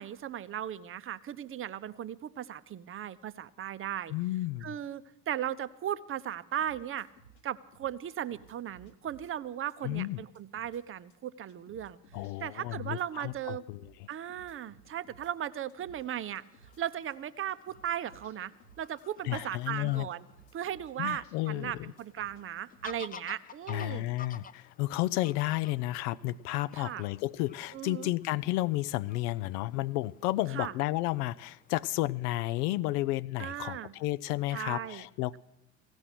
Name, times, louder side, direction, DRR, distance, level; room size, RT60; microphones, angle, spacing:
voice 1, 0.0-4.1 4.6-7.1 7.4-12.0 12.4-13.6 14.1-16.4 16.8-18.5 18.8-20.3 20.5-24.1 26.7-27.0 27.7-28.1 30.5-30.7 33.4-33.9 34.5-35.0, right 10 dB, 25° right, 15 dB, 0.6 m, -37 dB
voice 2, 4.1-4.7 9.8-10.2 12.1-13.9 19.2-20.1 21.0-21.9 23.7-35.4, left 17 dB, 65° left, 15 dB, 0.6 m, -32 dB
sound 1, 6.6-7.4 7.7-9.3 9.7-10.1 10.4-10.8 11.1-11.2 11.5-13.4 13.7-15.3 15.7-16.1 16.4-16.8 17.1-17.2 17.5-19.4 19.7-22.4 22.7-22.9, right 4 dB, 85° left, 1.6 m, -58 dB
Fowl / Bird vocalization bird call bird song, 16.0-31.7, left 6 dB, 20° left, 0.5 m, -54 dB
15.5 x 6.2 x 9.9 m, 0.89 s
hypercardioid pair, 60°, 50 cm